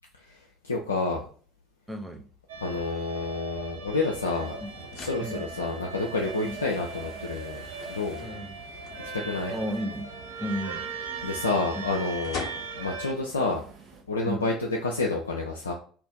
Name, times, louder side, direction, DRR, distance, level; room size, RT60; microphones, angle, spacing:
voice 1, 0.3-1.2 2.6-4.6 5.0-8.3 9.1-9.6 11.2-12.5 12.7-13.6 14.1-15.7, left 3 dB, 85° left, -1 dB, 0.3 m, -29 dB
voice 2, 1.9-2.3 4.6-4.7 5.2-5.5 6.4-6.6 8.2-8.6 9.5-10.1 10.4-10.9 11.7-11.8 14.3-14.5, equal, 5° right, 4 dB, 0.6 m, -33 dB
sound 1, 2.1-15.1, left 4 dB, 45° left, 0.8 m, -48 dB
sound 2, 2.5-13.1, right 4 dB, 75° right, 0.5 m, -39 dB
sound 3, 4.3-14.0, right 6 dB, 50° right, 1.0 m, -50 dB
2.5 x 2.5 x 3.6 m, 0.43 s
figure-of-eight pair, 65°, 0 cm